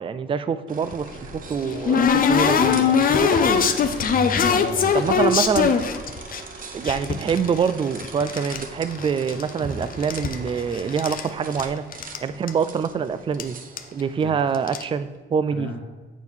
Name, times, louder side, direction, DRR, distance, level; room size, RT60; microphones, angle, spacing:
voice 1, 0.0-3.5 4.9-5.7 6.7-11.8 12.2-13.6 13.9-15.7, right 6 dB, 25° right, 13 dB, 0.4 m, -25 dB
sound 1, 0.7-15.1, right 4 dB, 45° right, 0.8 m, -41 dB
sound 2, 0.9-6.4 6.8-8.6 8.9-9.7 9.9-11.3 11.6-11.7 11.9-12.2 12.5-12.6 13.4-13.5 13.8-14.0 14.5-14.8, left 6 dB, 45° left, 0.6 m, -21 dB
voice 2, 4.1-5.3 14.2-14.4 15.5-15.8, left 3 dB, 70° left, 1 dB, 1.2 m, -34 dB
8.1 x 4.5 x 3.6 m, 1.3 s
cardioid pair, 90°, 20 cm